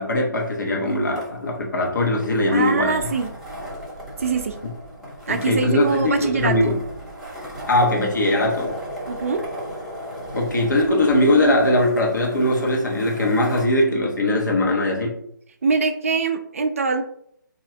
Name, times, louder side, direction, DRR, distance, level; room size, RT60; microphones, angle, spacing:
voice 1, 0.0-3.1 5.3-6.8 7.7-8.7 10.3-15.1, left 1 dB, 60° left, -1 dB, 1.2 m, -20 dB
sound 1, 0.9-13.7, equal, ahead, 0.7 m, -36 dB
voice 2, 2.5-3.3 4.2-4.6 5.3-6.8 9.1-9.4 15.6-17.0, right 4 dB, 40° right, 8 dB, 0.4 m, -23 dB
3.2 x 2.8 x 3.7 m, 0.72 s
figure-of-eight pair, 140°, 11 cm